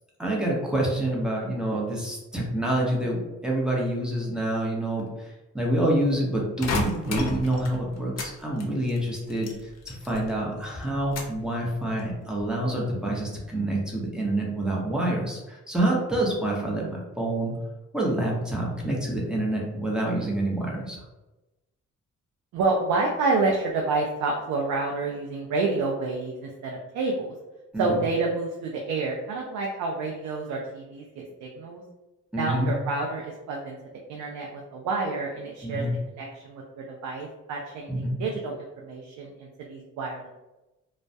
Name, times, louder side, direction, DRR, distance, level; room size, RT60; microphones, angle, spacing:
voice 1, 0.2-9.5 9.9-17.5 17.9-21.0 27.7-28.0 32.3-32.7 35.6-35.9 37.9-38.2, right 1 dB, 5° right, -3 dB, 0.7 m, -27 dB
sound 1, 6.6-8.3 8.6-10.4 10.6-11.5 11.9-12.4, left 3 dB, 60° left, 0.6 m, -32 dB
voice 2, 22.5-27.3 27.8-31.8 32.4-33.8 34.1-35.8 36.1-40.3, right 3 dB, 75° right, -1 dB, 0.5 m, -29 dB
2.2 x 2.1 x 2.6 m, 1.0 s
cardioid pair, 90°, 30 cm